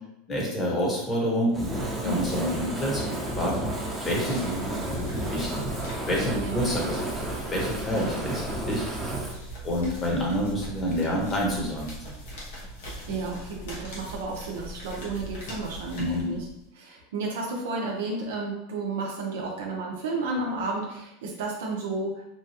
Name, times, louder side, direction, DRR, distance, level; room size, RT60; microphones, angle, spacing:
voice 1, 0.3-1.7 2.0-3.6 4.0-5.7 6.1-8.9 9.6-11.9 16.0-16.4, equal, 25° left, -2 dB, 1.1 m, -28 dB
Fire, 1.5-9.4, right 1 dB, 10° right, 0.8 m, -32 dB
voice 2, 2.0-2.4 6.3-6.7 7.9-8.1 13.1-16.5 16.7-22.2, right 3 dB, 80° right, -1 dB, 0.6 m, -32 dB
sound 1, 3.8-16.7, right 1 dB, 75° left, 1.1 m, -41 dB
3.0 x 2.3 x 2.8 m, 0.82 s
supercardioid pair, 115°, 0 cm